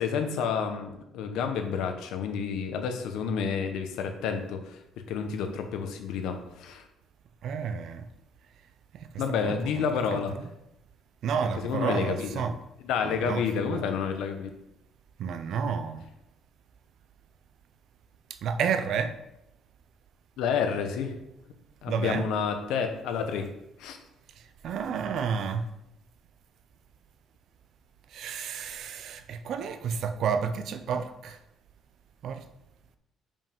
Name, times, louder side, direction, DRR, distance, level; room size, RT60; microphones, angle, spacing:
voice 1, 0.0-4.6 5.1-6.8 9.2-10.3 11.5-12.4 12.8-14.5 20.4-21.1 21.8-23.5 23.8-24.0, left 6 dB, 90° left, 1.0 m, -29 dB
voice 2, 7.4-8.1 9.4-9.9 11.2-12.6 13.0-13.8 15.2-16.0 18.4-19.1 21.9-22.2 24.6-25.7 28.1-31.4 32.2-32.4, right 6 dB, 55° right, 0.6 m, -30 dB
5.4 x 5.4 x 5.3 m
cardioid pair, 170°, 0 cm